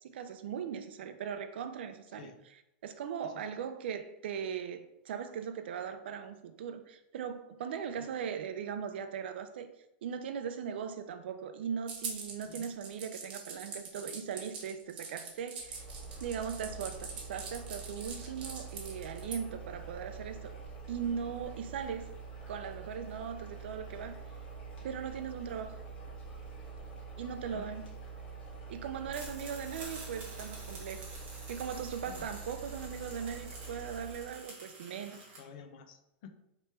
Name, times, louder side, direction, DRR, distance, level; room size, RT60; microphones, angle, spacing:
voice 1, 0.0-2.3 2.8-9.7 10.0-15.9 16.2-20.5 20.9-22.1 22.5-24.2 24.8-25.8 27.2-27.9 28.7-31.1 31.5-35.2, right 7 dB, 80° right, 0.4 m, -39 dB
sound 1, 11.9-19.4, right 5 dB, 55° right, 1.2 m, -43 dB
sound 2, 15.6-34.5, right 5 dB, 65° left, 1.1 m, -46 dB
voice 2, 27.3-27.7 32.1-32.3 34.9-36.3, left 6 dB, 45° left, 0.4 m, -51 dB
sound 3, 29.1-35.4, right 2 dB, 20° right, 1.1 m, -49 dB
3.3 x 2.9 x 4.4 m
supercardioid pair, 180°, 6 cm